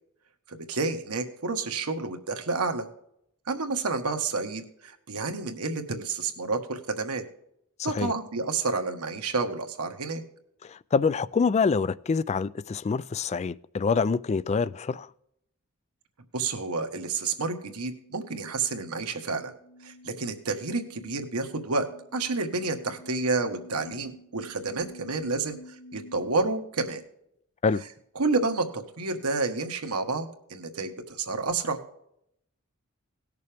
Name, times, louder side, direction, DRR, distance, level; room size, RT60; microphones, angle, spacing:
voice 1, 0.5-2.9 3.5-7.2 7.8-10.2 16.3-19.5 19.8-21.9 22.1-27.0 28.1-31.8, right 3 dB, 85° right, 1.5 m, -30 dB
voice 2, 7.8-8.1 10.6-15.1 27.6-27.8, left 5 dB, 30° left, 0.3 m, -26 dB
sound 1, 18.0-26.3, left 1 dB, 45° left, 1.4 m, -50 dB
18.5 x 6.8 x 3.4 m
head